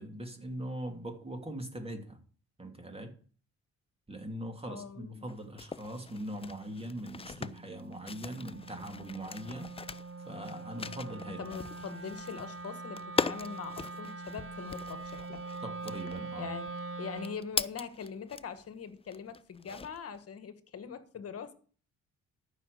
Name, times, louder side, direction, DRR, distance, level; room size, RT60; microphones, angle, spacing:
voice 1, 0.0-2.2 2.6-3.2 4.1-9.7 10.3-11.4 15.6-16.5, right 1 dB, 20° right, 2.8 m, -41 dB
voice 2, 4.7-5.3 11.3-15.4 16.4-16.7 17.0-21.5, left 6 dB, 50° left, 1.5 m, -42 dB
sound 1, 5.3-18.7 19.1-20.2, left 5 dB, 20° left, 0.5 m, -40 dB
Wind instrument woodwind instrument, 5.9-17.5, right 3 dB, 45° right, 1.2 m, -44 dB
13.5 x 6.1 x 6.6 m
cardioid pair, 90°, 30 cm